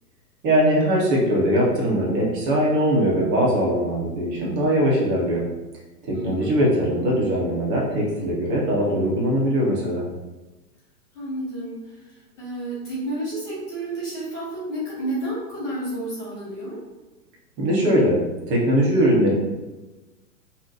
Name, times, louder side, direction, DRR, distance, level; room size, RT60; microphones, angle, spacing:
voice 1, 0.4-5.4 6.1-10.0 17.6-18.2 18.5-19.3, equal, 20° right, -4 dB, 0.7 m, -21 dB
voice 2, 6.1-6.5 11.1-12.0 12.4-16.8, right 1 dB, 10° left, -9 dB, 0.4 m, -31 dB
2.7 x 2.1 x 3.8 m, 1.1 s
figure-of-eight pair, 115°, 48 cm